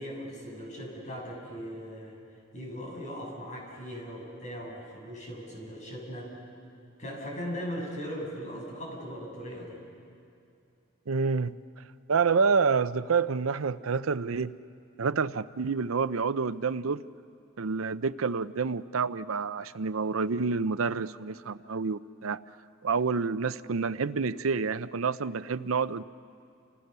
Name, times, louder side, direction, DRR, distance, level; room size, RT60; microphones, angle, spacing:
voice 1, 0.0-2.2 2.5-6.3 7.0-9.8, equal, 35° left, 7.3 m, -39 dB
voice 2, 11.1-11.6 12.1-14.6 15.0-17.0 17.6-22.4 22.8-26.0, right 5 dB, 85° right, 0.6 m, -28 dB
29.5 x 29.0 x 6.8 m
head